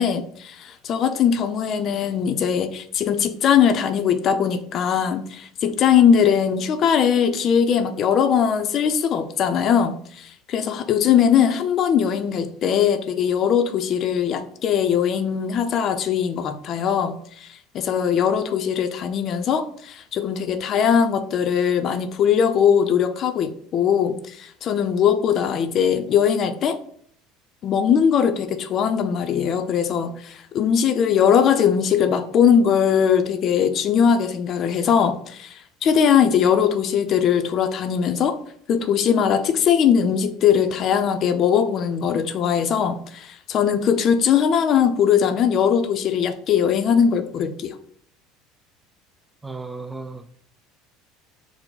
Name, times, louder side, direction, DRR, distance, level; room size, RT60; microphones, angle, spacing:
voice 1, 0.0-26.8 27.6-38.4 38.7-47.8, left 8 dB, 45° left, 0.4 m, -20 dB
voice 2, 49.4-50.4, right 3 dB, 10° right, 0.4 m, -35 dB
4.5 x 2.0 x 3.8 m
supercardioid pair, 105°, 0 cm